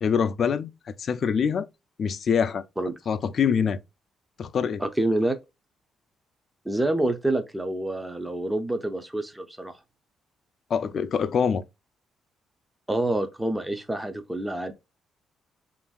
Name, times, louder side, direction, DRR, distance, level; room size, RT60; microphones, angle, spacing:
voice 1, 0.0-1.7 2.0-2.7 3.1-3.8 4.4-4.8 10.7-11.6, left 7 dB, 55° left, 0.3 m, -25 dB
voice 2, 4.8-5.4 6.7-9.8 12.9-14.7, right 1 dB, 10° right, 0.4 m, -27 dB
2.9 x 2.5 x 2.3 m
cardioid pair, 90°, 0 cm